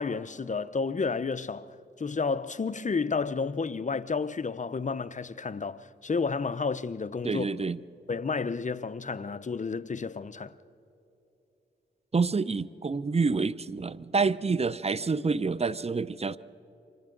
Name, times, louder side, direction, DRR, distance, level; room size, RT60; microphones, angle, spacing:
voice 1, 0.0-1.7 2.0-7.4 8.1-10.5, left 4 dB, 40° left, 0.7 m, -31 dB
voice 2, 7.2-7.8 12.1-16.4, right 4 dB, 30° right, 0.6 m, -27 dB
29.0 x 25.0 x 3.9 m
cardioid pair, 50°, 20 cm